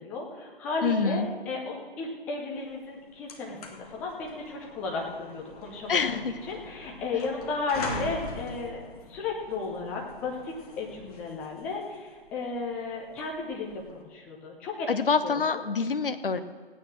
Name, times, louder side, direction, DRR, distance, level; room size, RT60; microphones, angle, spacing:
voice 1, 0.0-6.2 6.5-8.8 9.1-14.9 15.2-15.6, left 3 dB, 5° left, -1 dB, 0.5 m, -34 dB
voice 2, 0.8-1.3 5.9-6.3 14.9-16.4, left 5 dB, 60° left, 10 dB, 1.0 m, -26 dB
sound 1, 2.7-2.8 3.1-14.0, left 3 dB, 35° left, 1.7 m, -42 dB
16.5 x 9.3 x 6.1 m, 1.5 s
figure-of-eight pair, 140°, 31 cm